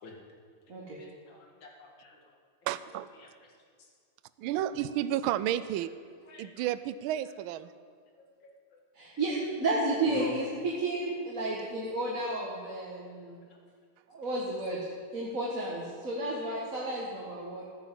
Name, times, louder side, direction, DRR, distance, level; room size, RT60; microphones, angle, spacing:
voice 1, 1.0-2.2 3.2-3.3 3.8-3.9 6.3-6.5 8.4-8.6 10.1-10.3 13.4-13.6, left 4 dB, 65° left, 0 dB, 2.7 m, -45 dB
voice 2, 2.7-3.1 4.4-5.9 6.4-7.7, right 12 dB, 80° right, 14 dB, 1.4 m, -31 dB
voice 3, 8.9-13.4 14.1-14.8 15.1-17.6, right 2 dB, 40° right, -4 dB, 2.1 m, -32 dB
14.5 x 10.0 x 7.6 m, 2.1 s
omnidirectional pair, 2.3 m